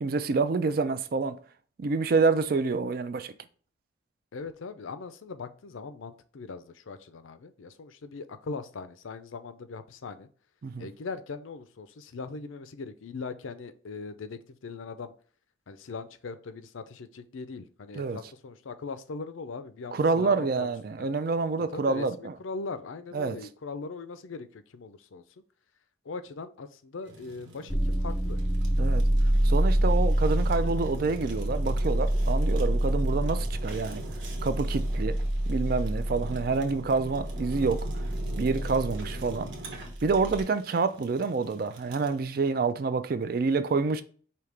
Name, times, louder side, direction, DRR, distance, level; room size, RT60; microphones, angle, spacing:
voice 1, 0.0-1.4 1.8-3.3 10.6-10.9 18.0-18.2 19.9-22.3 23.1-23.4 28.8-29.1 29.4-34.0 34.4-35.2 35.5-37.9 38.4-39.5 40.0-44.0, right 4 dB, 50° right, 0.4 m, -27 dB
voice 2, 4.3-10.3 10.8-15.1 15.7-20.7 21.0-21.1 21.7-25.2 26.0-28.4, left 4 dB, 85° left, 0.5 m, -40 dB
Fire, 27.0-42.2, right 2 dB, 70° right, 1.1 m, -45 dB
sound 1, 27.7-40.4, right 1 dB, 5° left, 0.5 m, -27 dB
5.1 x 2.8 x 3.3 m
head